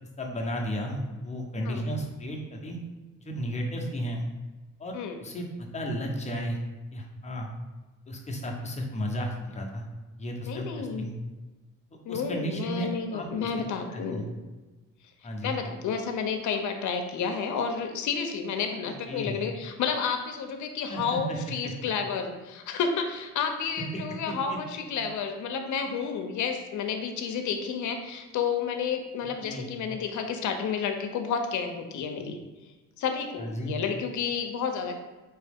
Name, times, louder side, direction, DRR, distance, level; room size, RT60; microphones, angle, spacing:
voice 1, 0.2-2.8 3.2-4.2 4.8-6.6 6.9-7.5 8.1-9.8 10.2-11.1 11.9-13.5 13.9-14.2 15.2-15.6 18.8-19.4 20.9-21.7 23.9-24.6 29.4-29.7 33.4-33.7, equal, 20° left, 0 dB, 0.9 m, -34 dB
voice 2, 10.5-11.1 12.0-14.2 15.4-32.4 33.0-35.0, left 6 dB, 75° left, 5 dB, 0.7 m, -31 dB
4.6 x 3.0 x 3.5 m, 1.2 s
cardioid pair, 90°, 30 cm